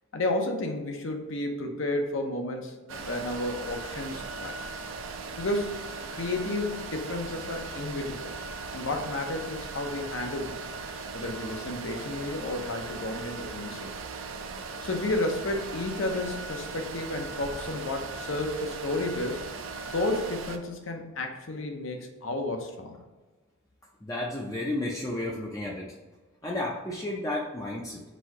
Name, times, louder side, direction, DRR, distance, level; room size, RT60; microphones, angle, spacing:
voice 1, 0.1-4.7 5.4-5.8 6.1-8.3 8.7-10.6 11.1-14.0 14.8-19.5 19.9-22.9, left 2 dB, 70° left, 3 dB, 0.7 m, -32 dB
sound 1, 2.9-20.6, right 4 dB, 70° right, 0.5 m, -38 dB
voice 2, 24.0-25.9 26.4-28.0, left 1 dB, 15° left, -3 dB, 0.4 m, -32 dB
4.2 x 2.7 x 4.6 m, 1.2 s
head